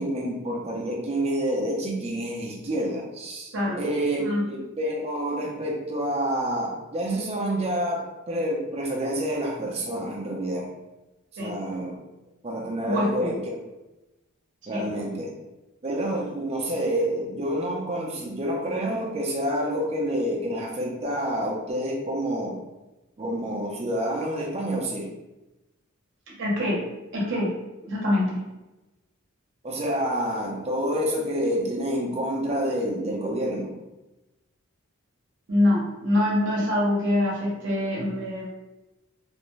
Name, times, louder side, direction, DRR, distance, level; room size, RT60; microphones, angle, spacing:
voice 1, 0.0-10.7 11.4-12.0 12.4-13.4 14.7-15.3 15.8-22.6 23.2-25.1 29.6-33.7, right 1 dB, 30° right, -2 dB, 0.5 m, -28 dB
voice 2, 12.8-13.4 14.7-14.9 26.3-26.8 27.1-27.5 27.9-28.4 35.5-38.5, left 1 dB, 60° right, -4 dB, 0.8 m, -25 dB
2.5 x 2.1 x 3.0 m, 1.0 s
head